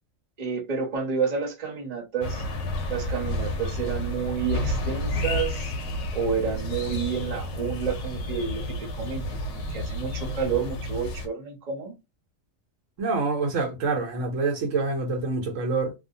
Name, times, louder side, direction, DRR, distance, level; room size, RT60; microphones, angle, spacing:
voice 1, 0.4-2.4 2.9-5.7 6.1-11.9, right 6 dB, 35° right, 0.8 m, -30 dB
sound 1, 2.2-11.3, left 1 dB, 70° left, 1.0 m, -30 dB
voice 2, 13.0-15.9, right 3 dB, 75° right, 1.1 m, -26 dB
2.6 x 2.1 x 2.6 m
omnidirectional pair, 1.3 m